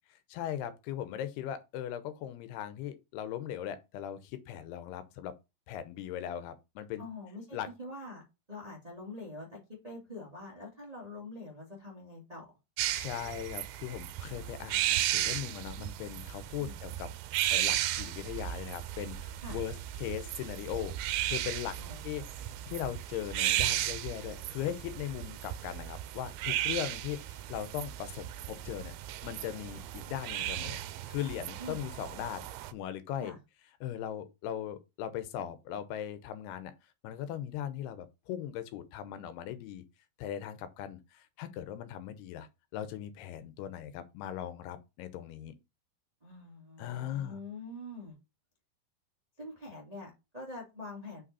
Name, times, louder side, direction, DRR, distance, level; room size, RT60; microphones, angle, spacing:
voice 1, 0.3-5.3 5.7-7.0 7.5-7.7 13.0-17.1 17.5-19.7 20.0-21.8 22.0-28.9 29.2-30.8 31.1-32.5 32.7-33.3 33.8-36.7 37.0-39.8 40.2-45.6 46.8-47.4, left 10 dB, 90° left, 2.8 m, -39 dB
voice 2, 7.0-8.2 8.5-12.5 16.6-16.8 19.4-19.6 21.8-22.9 31.6-31.9 33.2-33.4 46.2-48.2 49.4-51.2, left 2 dB, 20° right, 1.0 m, -45 dB
sound 1, 12.8-32.7, right 13 dB, 85° right, 2.4 m, -35 dB
6.0 x 5.1 x 4.1 m
omnidirectional pair, 4.5 m